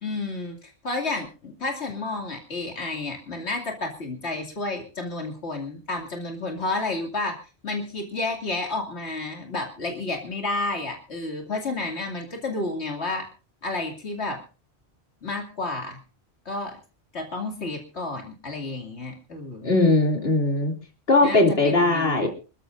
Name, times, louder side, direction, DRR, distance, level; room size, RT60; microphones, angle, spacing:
voice 1, 0.0-7.4 7.6-13.3 13.6-14.4 15.2-16.0 16.5-16.8 17.1-19.7 21.2-22.3, left 2 dB, 90° left, 2 dB, 2.9 m, -31 dB
voice 2, 19.6-20.7 21.1-22.3, left 2 dB, 65° left, 3 dB, 3.3 m, -19 dB
28.0 x 13.5 x 2.6 m, 0.35 s
omnidirectional pair, 1.1 m